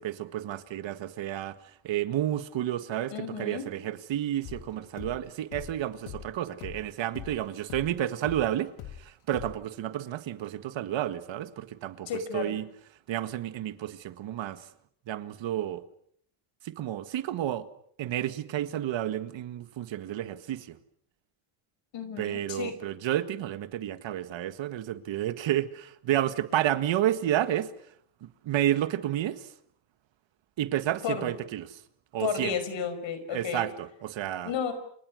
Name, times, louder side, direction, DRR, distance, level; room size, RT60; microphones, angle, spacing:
voice 1, 0.0-1.6 1.8-8.7 9.0-12.7 13.1-14.7 15.1-15.8 16.6-17.7 18.0-20.8 22.2-27.7 28.2-29.5 30.6-31.8 32.1-32.6 33.3-34.5, right 12 dB, 65° right, 1.8 m, -31 dB
voice 2, 3.1-3.7 12.1-12.6 21.9-22.8 31.0-31.3 32.2-33.7 34.4-34.7, left 7 dB, 65° left, 5.5 m, -32 dB
sound 1, 4.4-9.0 9.3-9.6, left 10 dB, 85° left, 3.0 m, -43 dB
29.5 x 26.5 x 6.4 m
cardioid pair, 105°, 49 cm